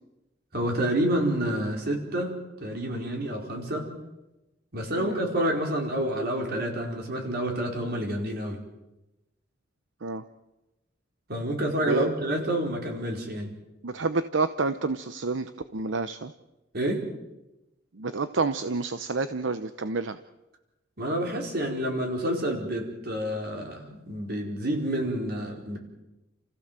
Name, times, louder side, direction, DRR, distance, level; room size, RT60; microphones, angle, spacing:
voice 1, 0.5-3.9 4.7-8.6 11.3-13.5 16.7-17.0 21.0-25.8, right 1 dB, 55° right, 1 dB, 4.8 m, -28 dB
voice 2, 13.8-16.3 18.0-20.2, right 3 dB, 80° right, 11 dB, 0.8 m, -29 dB
30.0 x 15.5 x 7.6 m, 0.98 s
head